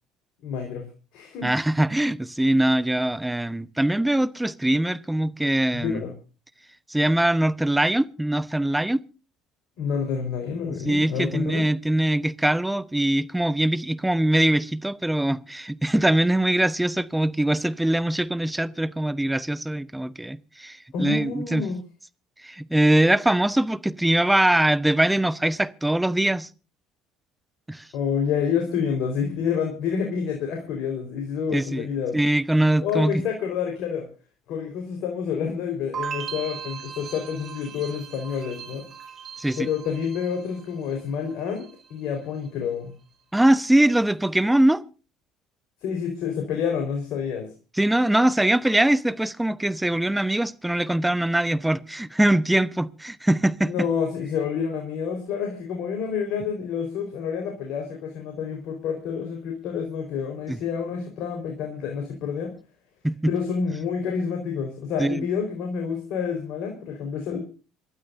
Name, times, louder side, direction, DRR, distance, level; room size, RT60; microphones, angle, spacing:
voice 1, 0.4-0.9 1.1-1.5 5.7-6.1 9.8-11.6 20.9-21.8 27.9-32.2 32.8-34.1 34.5-38.8 39.5-42.9 45.8-47.5 53.6-62.5 63.3-67.4, left 6 dB, 65° left, 4.3 m, -28 dB
voice 2, 1.4-6.0 6.9-9.0 10.8-21.7 22.4-26.5 27.7-27.8 31.5-31.9 32.1-33.2 39.4-39.7 43.3-44.8 47.8-53.9 60.5-60.6 63.0-63.3 65.0-65.3, right 1 dB, 5° right, 0.9 m, -22 dB
sound 1, 35.9-41.0 41.3-41.9, right 7 dB, 45° right, 4.2 m, -38 dB
27.5 x 12.5 x 2.6 m
hypercardioid pair, 65°, 0 cm